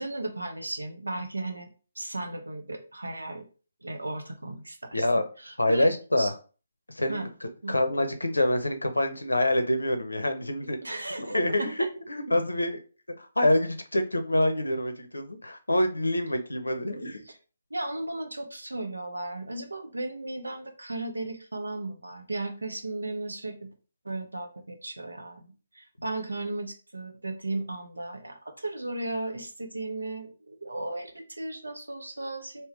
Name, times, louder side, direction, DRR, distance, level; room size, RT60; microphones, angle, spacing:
voice 1, 0.0-1.7 2.0-3.4 3.8-5.1 5.4-5.9 6.2-6.3 7.1-7.3 7.6-7.7 10.8-11.9 17.7-23.7 24.0-32.7, right 2 dB, 75° right, 6 dB, 0.8 m, -35 dB
voice 2, 4.9-5.2 5.6-6.3 6.9-10.8 11.2-12.8 13.2-17.2, left 1 dB, 80° left, 8 dB, 0.6 m, -26 dB
3.5 x 2.8 x 3.0 m, 0.36 s
figure-of-eight pair, 140°, 0 cm